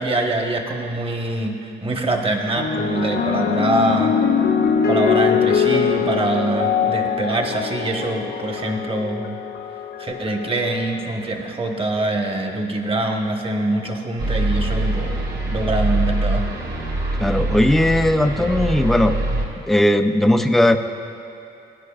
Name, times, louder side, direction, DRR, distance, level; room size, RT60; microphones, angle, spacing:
voice 1, 0.0-4.1 4.9-9.4 10.0-15.1 15.4-16.4, right 2 dB, 30° right, 2 dB, 1.2 m, -24 dB
sound 1, 2.5-11.1 12.0-12.4, left 7 dB, 55° left, 0.8 m, -22 dB
sound 2, 14.2-19.5, right 2 dB, 60° right, 1.6 m, -23 dB
voice 2, 17.2-19.1 19.7-20.8, left 1 dB, ahead, 7 dB, 0.4 m, -17 dB
19.0 x 9.5 x 2.4 m, 2.8 s
cardioid pair, 90°, 20 cm